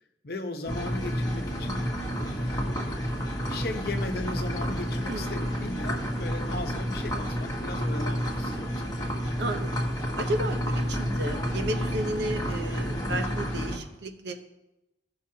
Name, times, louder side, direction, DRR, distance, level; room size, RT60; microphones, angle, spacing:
voice 1, 0.2-3.0 3.4-9.0, left 2 dB, 55° left, 5 dB, 0.9 m, -37 dB
sound 1, 0.7-13.8, equal, 20° left, 1.1 m, -30 dB
voice 2, 9.4-9.9 10.2-14.3, right 1 dB, 65° right, 6 dB, 0.8 m, -33 dB
16.5 x 5.8 x 2.8 m, 0.96 s
head